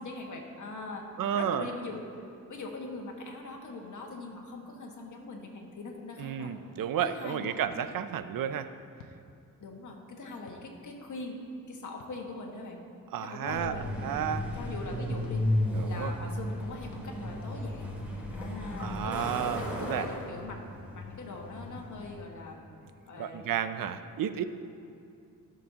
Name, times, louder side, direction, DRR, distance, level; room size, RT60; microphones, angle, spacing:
voice 1, 0.0-1.1 1.3-2.0 2.5-6.5 7.0-7.6 9.6-11.4 11.7-12.8 13.2-14.0 14.5-15.4 15.8-17.9 18.3-19.3 19.6-22.6 23.1-23.5, left 3 dB, 60° left, 1 dB, 1.6 m, -41 dB
voice 2, 1.2-1.6 6.2-8.7 13.1-13.8 14.0-14.4 15.7-16.1 18.8-19.6 19.9-20.1 23.2-24.4, right 9 dB, 75° right, 11 dB, 0.6 m, -32 dB
sound 1, 7.7-7.8 9.0-9.2 10.5-10.6 12.0-12.2 13.6-13.8 15.2-15.4 16.9-17.1 18.2-18.3 19.3-19.4, left 6 dB, 80° left, 0.9 m, -53 dB
Truck, 13.5-22.2, left 1 dB, 5° right, 2.4 m, -34 dB
17.0 x 6.5 x 2.9 m, 2.6 s
cardioid pair, 90°, 34 cm